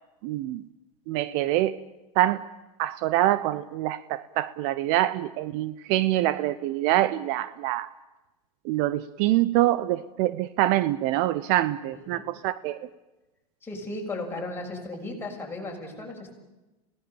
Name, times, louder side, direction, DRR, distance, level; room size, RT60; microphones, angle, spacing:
voice 1, 0.2-0.6 1.1-1.8 2.2-2.5 2.8-7.9 8.6-12.8, right 15 dB, 55° right, 17 dB, 0.8 m, -25 dB
voice 2, 11.8-12.2 13.6-16.3, left 2 dB, 10° left, -1 dB, 6.5 m, -36 dB
28.0 x 18.0 x 7.1 m, 1.0 s
supercardioid pair, 125°, 19 cm